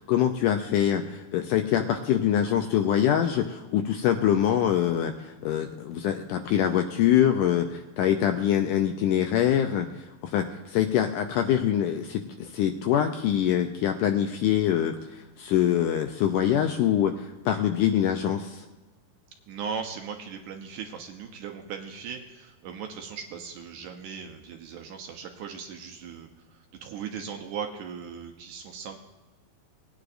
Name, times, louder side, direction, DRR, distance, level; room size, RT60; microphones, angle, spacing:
voice 1, 0.1-18.7, left 10 dB, 80° left, 6 dB, 1.9 m, -24 dB
voice 2, 19.5-29.0, right 6 dB, 75° right, 3 dB, 2.0 m, -38 dB
19.0 x 9.6 x 2.5 m, 1.1 s
omnidirectional pair, 4.2 m